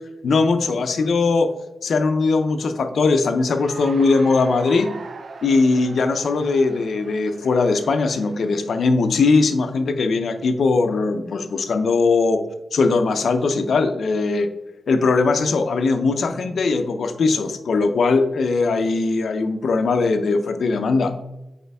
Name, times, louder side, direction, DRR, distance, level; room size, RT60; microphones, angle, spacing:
voice 1, 0.2-1.5 1.8-4.9 5.4-12.4 12.7-14.5 14.9-21.1, left 3 dB, 85° left, 7 dB, 0.6 m, -20 dB
Cheering / Applause, 3.5-8.7, right 4 dB, 65° right, 0.5 m, -41 dB
6.5 x 4.4 x 3.4 m, 1.0 s
wide cardioid pair, 100°, 0 cm